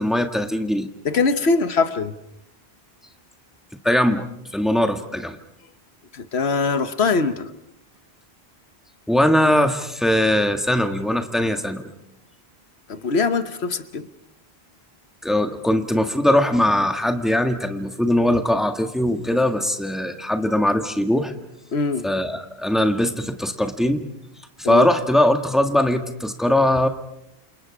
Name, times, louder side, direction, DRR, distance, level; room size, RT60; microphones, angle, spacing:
voice 1, 0.0-0.9 3.8-4.2 4.5-5.4 9.1-11.9 15.2-21.3 22.0-24.0 24.6-26.9, left 1 dB, ahead, 6 dB, 1.6 m, -20 dB
voice 2, 1.0-2.1 6.1-7.5 12.9-14.1 21.7-22.1 24.6-24.9, left 4 dB, 85° left, 11 dB, 1.4 m, -22 dB
28.5 x 27.5 x 5.0 m, 0.81 s
omnidirectional pair, 1.1 m